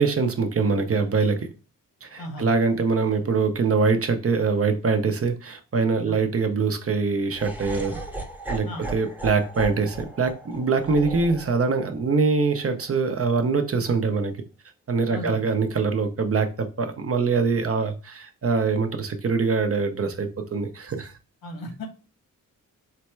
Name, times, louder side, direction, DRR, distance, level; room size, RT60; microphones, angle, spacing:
voice 1, 0.0-1.5 2.0-8.0 8.5-14.4 14.9-21.1, right 4 dB, 40° right, 0.7 m, -23 dB
voice 2, 2.2-2.5 6.0-6.2 8.6-8.9 15.1-15.4 21.4-21.8, left 1 dB, 85° left, 1.4 m, -35 dB
Laughter, 7.3-13.5, right 2 dB, 5° right, 0.8 m, -37 dB
4.1 x 2.1 x 4.4 m
cardioid pair, 70°, 35 cm